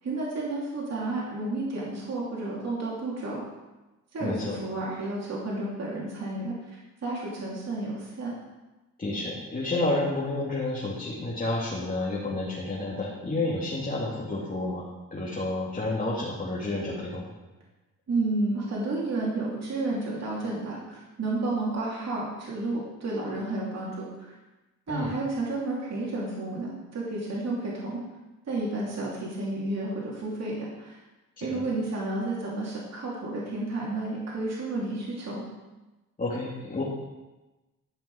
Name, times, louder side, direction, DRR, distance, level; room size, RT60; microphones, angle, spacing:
voice 1, 0.0-3.4 4.1-8.3 18.1-24.3 24.9-28.0 28.5-31.0 31.4-35.4, right 2 dB, 55° right, -5 dB, 2.9 m, -31 dB
voice 2, 4.2-4.6 9.0-14.8 15.1-17.3 24.9-25.1 31.4-31.6 36.2-36.8, left 2 dB, 25° left, -6 dB, 2.5 m, -30 dB
13.0 x 5.9 x 4.9 m, 1.1 s
cardioid pair, 80°, 32 cm